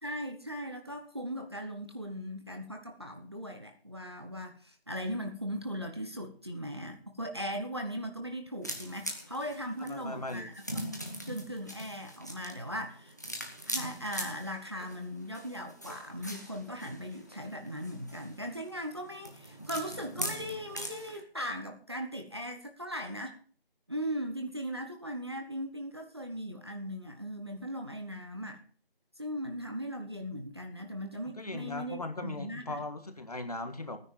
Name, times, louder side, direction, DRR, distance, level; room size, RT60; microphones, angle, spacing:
voice 1, 0.0-10.5 11.3-13.1 13.6-23.4 23.9-28.6 29.2-32.8, equal, 25° right, 3 dB, 1.0 m, -38 dB
sound 1, 8.6-21.2, equal, 20° left, 1.0 m, -42 dB
voice 2, 9.9-10.5 31.3-34.0, left 2 dB, 40° left, 7 dB, 1.7 m, -38 dB
14.0 x 9.7 x 5.4 m, 0.41 s
figure-of-eight pair, 175°, 30 cm